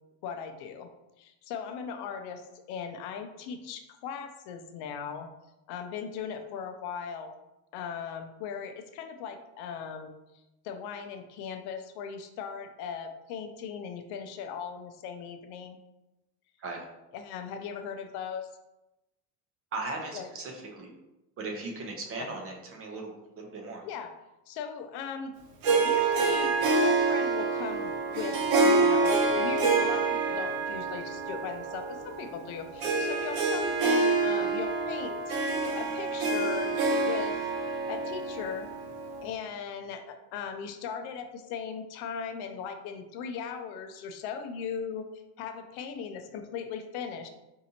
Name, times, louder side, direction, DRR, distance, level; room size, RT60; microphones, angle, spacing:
voice 1, 0.2-0.9 1.2-2.4 2.7-5.3 5.7-7.3 7.7-10.1 10.6-15.8 17.1-18.5 20.1-20.3 22.2-22.3 23.9-24.1 24.5-25.3 25.8-35.4 35.7-36.8 37.0-37.4 37.9-38.7 39.2-45.1 45.4-47.3, left 6 dB, 75° left, 6 dB, 0.6 m, -38 dB
voice 2, 19.7-20.9 21.4-23.8, right 3 dB, 35° right, 1 dB, 0.8 m, -38 dB
Harp, 25.6-39.3, right 3 dB, 65° right, 0.9 m, -27 dB
5.1 x 2.7 x 2.8 m, 0.97 s
cardioid pair, 140°, 39 cm